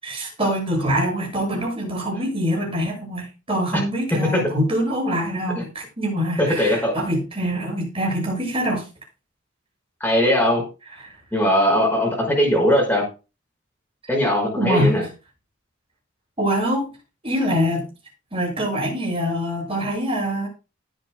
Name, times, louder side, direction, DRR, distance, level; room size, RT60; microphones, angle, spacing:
voice 1, 0.0-8.9 11.0-11.1 14.6-14.9 16.4-16.9 17.2-17.9 18.3-20.5, equal, 30° right, -1 dB, 7.0 m, -24 dB
voice 2, 6.4-7.0 10.0-10.6 11.3-13.0 14.1-15.0, equal, 10° left, -1 dB, 5.6 m, -19 dB
19.0 x 8.7 x 2.2 m, 0.30 s
head